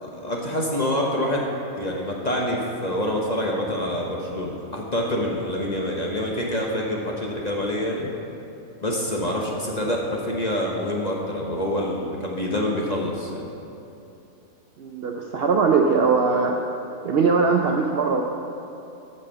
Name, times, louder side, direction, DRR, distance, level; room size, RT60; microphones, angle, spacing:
voice 1, 0.0-1.5 1.8-8.1 8.8-13.5, left 1 dB, 35° left, -2 dB, 0.8 m, -26 dB
voice 2, 14.8-16.6 17.0-18.2, right 4 dB, 65° right, 2 dB, 0.6 m, -20 dB
8.7 x 5.4 x 6.7 m, 2.8 s
omnidirectional pair, 1.5 m